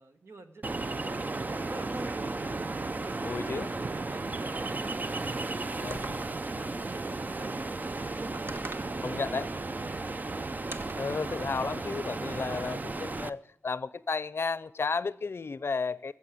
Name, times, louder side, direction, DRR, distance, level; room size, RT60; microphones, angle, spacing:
voice 1, 0.0-2.6 2.9-7.7 8.0-10.0 10.7-11.6, right 2 dB, 80° right, 1.3 m, -48 dB
Ocean, 0.6-13.3, right 3 dB, 40° right, 0.5 m, -34 dB
voice 2, 3.2-3.7 5.8-6.0 9.0-9.5 11.0-16.1, left 4 dB, 75° left, 0.5 m, -33 dB
sound 1, 5.9-6.6 8.5-9.0 10.7-11.1, right 2 dB, 65° right, 1.0 m, -41 dB
15.0 x 7.4 x 8.3 m
wide cardioid pair, 80°, 4 cm